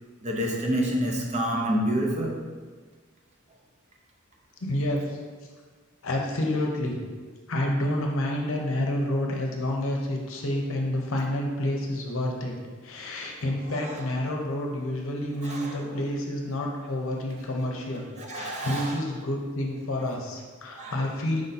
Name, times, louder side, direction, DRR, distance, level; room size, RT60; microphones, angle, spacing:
voice 1, 0.2-2.4 13.7-14.0 15.4-16.0 18.2-18.9 20.8-21.0, equal, 30° right, -1 dB, 0.6 m, -28 dB
voice 2, 4.6-5.2 6.0-7.0 7.5-12.5 12.8-18.1 18.3-21.4, left 1 dB, 65° left, 1 dB, 0.7 m, -29 dB
4.8 x 2.6 x 4.1 m, 1.5 s
head